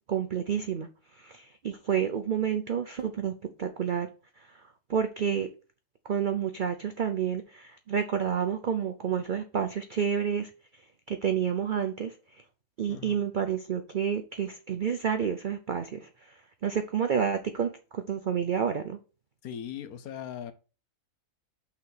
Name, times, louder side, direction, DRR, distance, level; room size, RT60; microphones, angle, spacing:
voice 1, 0.1-0.9 1.2-3.3 3.6-4.1 4.9-5.5 6.1-10.5 11.1-12.4 12.8-16.3 16.6-19.0, right 8 dB, 75° right, 0.4 m, -29 dB
voice 2, 12.9-13.2 19.4-20.5, left 9 dB, 75° left, 1.2 m, -39 dB
5.8 x 3.6 x 5.9 m
omnidirectional pair, 1.6 m